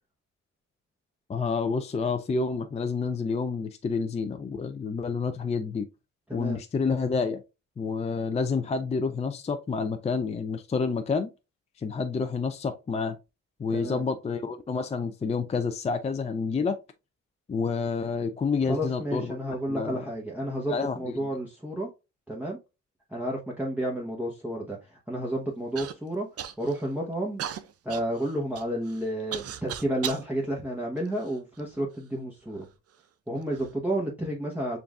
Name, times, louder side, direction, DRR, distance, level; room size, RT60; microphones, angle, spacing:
voice 1, 1.3-5.9 6.3-7.4 7.8-11.3 11.8-13.2 13.6-16.8 17.5-19.4 19.7-20.1 20.7-21.2, left 4 dB, 20° left, 0.4 m, -29 dB
voice 2, 13.7-14.0 18.6-21.9 22.3-22.6 23.1-26.3 26.6-27.4 27.8-32.7 33.3-34.8, right 1 dB, 5° right, 1.0 m, -31 dB
Human voice / Cough, 25.8-25.9 26.4-26.9 27.4-30.3 31.0-31.8 32.6-32.7 33.4-33.7, right 10 dB, 55° right, 0.5 m, -37 dB
6.9 x 2.6 x 2.4 m
cardioid pair, 90°, 30 cm